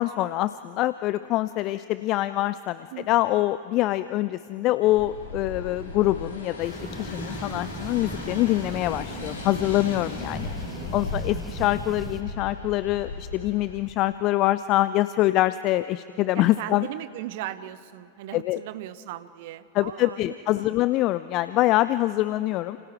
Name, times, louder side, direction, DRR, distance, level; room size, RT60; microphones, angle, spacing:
voice 1, 0.0-10.5 10.9-16.9 18.3-18.6 19.8-22.8, left 16 dB, 40° left, 15 dB, 0.5 m, -25 dB
sound 1, 4.8-13.8, left 3 dB, 65° left, 4.0 m, -37 dB
sound 2, 6.6-12.2, right 3 dB, 10° right, 1.2 m, -39 dB
voice 2, 10.6-11.2 16.3-20.8, right 13 dB, 50° right, 14 dB, 1.0 m, -38 dB
30.0 x 28.0 x 4.7 m, 2.8 s
figure-of-eight pair, 90°, 0 cm